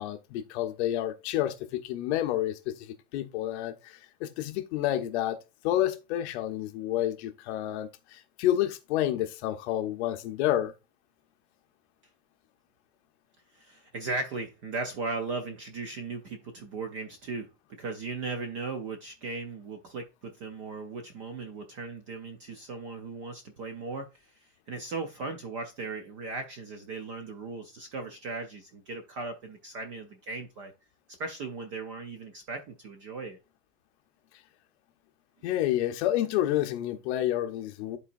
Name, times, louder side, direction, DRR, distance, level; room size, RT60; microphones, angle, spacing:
voice 1, 0.0-5.4 5.6-10.7 35.4-38.0, left 12 dB, 50° left, 0.8 m, -29 dB
voice 2, 13.5-17.5 17.8-24.1 24.7-30.7 31.2-33.4, right 3 dB, 25° right, 0.3 m, -37 dB
11.0 x 4.1 x 2.5 m
supercardioid pair, 165°, 43 cm